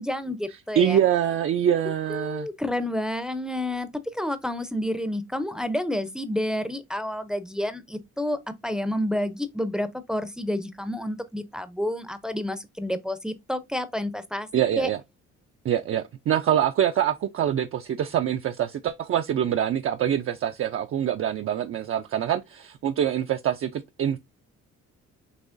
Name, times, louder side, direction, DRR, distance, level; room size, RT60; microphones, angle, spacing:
voice 1, 0.0-1.0 2.1-3.9 4.1-14.5 14.8-14.9, left 1 dB, ahead, 0.6 m, -29 dB
voice 2, 0.8-2.5 14.5-15.0 15.6-24.2, right 10 dB, 45° right, 0.4 m, -25 dB
6.2 x 2.9 x 2.5 m
cardioid pair, 90°, 30 cm